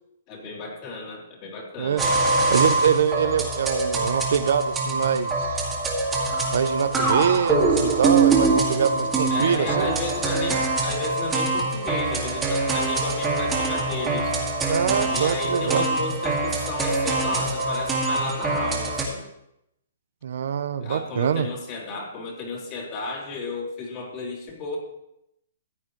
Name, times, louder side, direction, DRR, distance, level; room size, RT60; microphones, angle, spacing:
voice 1, 0.3-2.1 9.3-14.3 15.1-19.3 20.8-24.8, left 3 dB, 35° left, -2 dB, 3.4 m, -33 dB
sound 1, 2.0-19.0, right 3 dB, 15° right, 2.1 m, -24 dB
voice 2, 2.5-5.6 6.5-9.9 14.7-15.9 20.2-21.5, right 8 dB, 70° right, 13 dB, 0.6 m, -24 dB
14.5 x 8.8 x 3.2 m, 0.83 s
hypercardioid pair, 145°, 0 cm